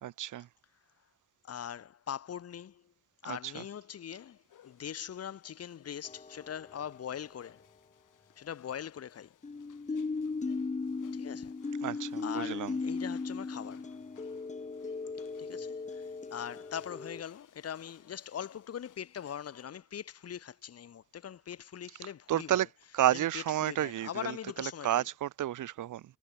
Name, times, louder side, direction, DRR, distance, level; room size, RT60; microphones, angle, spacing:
voice 1, 0.0-0.5 3.3-3.6 11.8-12.7 22.3-22.7 22.9-26.0, right 12 dB, 80° right, 1.1 m, -31 dB
voice 2, 1.4-2.8 3.2-4.4 4.6-7.6 8.4-9.3 11.1-11.5 11.9-13.9 15.4-22.6 23.1-25.0, left 9 dB, 50° left, 1.5 m, -42 dB
sound 1, 4.2-19.7, left 10 dB, 80° left, 7.3 m, -63 dB
sound 2, 6.0-6.9 9.4-17.2, left 4 dB, 25° left, 3.0 m, -37 dB
wide cardioid pair, 150°, 31 cm